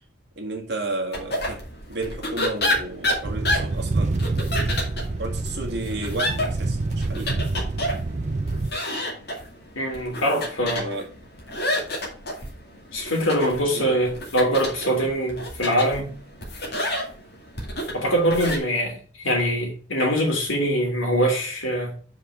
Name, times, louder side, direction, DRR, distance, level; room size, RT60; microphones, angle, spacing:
voice 1, 0.4-1.6 1.9-4.1 5.2-7.4 10.7-11.1 13.7-13.9, right 2 dB, 55° right, 1.9 m, -32 dB
sound 1, 1.1-18.6, left 1 dB, 50° left, 2.2 m, -30 dB
sound 2, 3.2-8.7, right 2 dB, 35° right, 0.5 m, -27 dB
voice 2, 9.7-10.8 12.9-16.2 17.9-22.0, equal, 80° left, 3.1 m, -23 dB
5.3 x 5.1 x 6.5 m
head